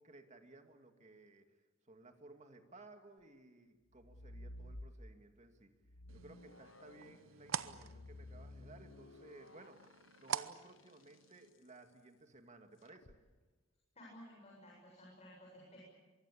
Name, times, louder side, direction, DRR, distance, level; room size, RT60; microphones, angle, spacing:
voice 1, 0.0-1.6 1.9-5.7 6.1-9.8 10.2-13.2, right 2 dB, 35° right, 6 dB, 2.3 m, -59 dB
sound 1, 3.9-5.4 5.8-11.3 12.9-13.2, left 1 dB, 70° left, 1.2 m, -54 dB
sound 2, 6.1-11.5, right 8 dB, 85° right, 0.9 m, -46 dB
voice 2, 13.9-15.8, equal, 35° left, -3 dB, 7.7 m, -56 dB
24.5 x 23.5 x 8.6 m, 1.2 s
head